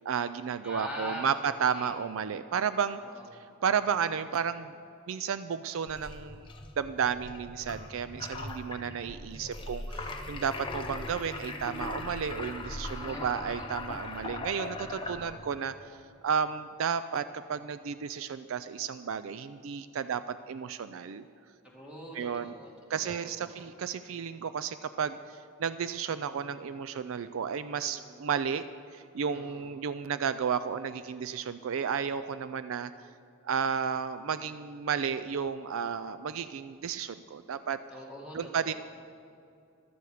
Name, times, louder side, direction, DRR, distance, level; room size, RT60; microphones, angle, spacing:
voice 1, 0.0-3.0 3.6-4.7 5.1-6.5 6.8-15.9 16.2-21.2 22.1-22.5 22.9-28.7 28.9-32.9 33.4-37.8 38.3-38.7, right 7 dB, 65° right, 12 dB, 0.4 m, -32 dB
voice 2, 0.6-1.9 3.1-3.3 12.8-13.7 15.0-15.4 21.6-23.6 27.7-28.2 29.3-29.6 37.9-38.7, equal, 5° right, -3 dB, 2.2 m, -44 dB
sound 1, 5.9-15.6, left 2 dB, 20° left, 0.8 m, -40 dB
14.5 x 12.5 x 4.9 m, 2.6 s
head